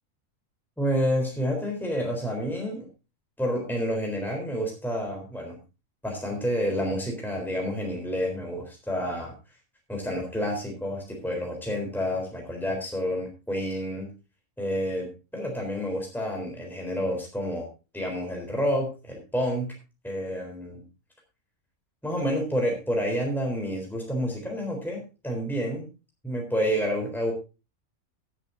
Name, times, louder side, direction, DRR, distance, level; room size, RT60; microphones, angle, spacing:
voice 1, 0.8-2.8 3.4-5.6 6.0-9.3 9.9-14.1 14.6-17.7 17.9-19.7 20.0-20.8 22.0-25.9 26.2-27.3, equal, ahead, 0 dB, 3.8 m, -29 dB
18.5 x 10.0 x 2.7 m, 0.31 s
omnidirectional pair, 1.5 m